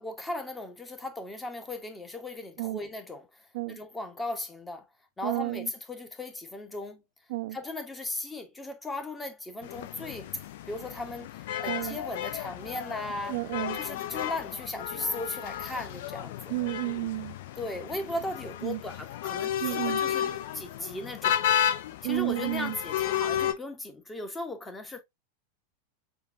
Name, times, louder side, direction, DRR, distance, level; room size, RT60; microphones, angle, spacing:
voice 1, 0.0-4.9 5.2-7.0 7.5-10.3 10.7-13.4 13.7-16.5 17.6-21.4 22.0-25.0, left 2 dB, 10° left, 1.0 m, -37 dB
voice 2, 5.2-5.7 7.3-7.6 11.7-12.0 13.3-13.8 16.5-17.4 18.6-18.8 19.6-20.0 22.0-22.8, right 20 dB, 50° right, 0.4 m, -31 dB
sound 1, 9.6-23.5, left 10 dB, 55° left, 0.5 m, -33 dB
6.8 x 2.4 x 2.6 m
figure-of-eight pair, 90°, 0 cm